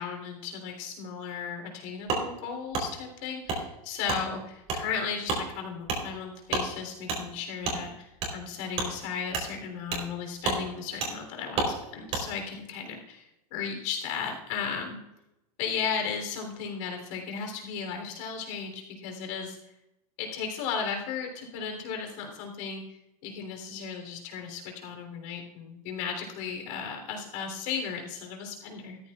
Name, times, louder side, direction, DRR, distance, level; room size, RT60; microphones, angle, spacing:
voice 1, 0.0-13.2 13.5-15.0 15.6-19.5 20.2-29.0, left 6 dB, 50° left, 3 dB, 3.5 m, -35 dB
Wood, 2.1-2.2 2.7-2.9 3.5-3.6 4.1-4.2 4.7-4.8 5.2-5.4 5.8-6.0 6.5-6.7 7.1-7.2 7.6-7.8 8.2-8.3 8.7-8.9 9.3-9.5 9.9-10.1 10.4-10.6 11.0-11.1 11.5-11.7 12.1-12.2, right 3 dB, 35° right, 3.9 m, -29 dB
14.5 x 13.5 x 2.5 m, 0.91 s
supercardioid pair, 145°, 20 cm